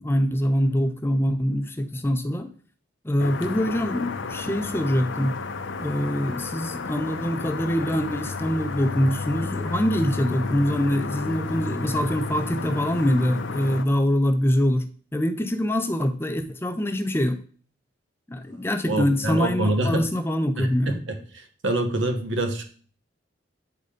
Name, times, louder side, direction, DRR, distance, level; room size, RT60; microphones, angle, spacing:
voice 1, 0.0-2.5 3.0-5.4 5.8-17.4 18.3-21.0, equal, 10° left, 0.5 m, -24 dB
sound 1, 3.2-13.9, left 4 dB, 75° left, 0.7 m, -32 dB
voice 2, 18.9-20.1 20.6-22.6, right 1 dB, 80° right, 1.3 m, -26 dB
8.6 x 4.0 x 5.0 m
head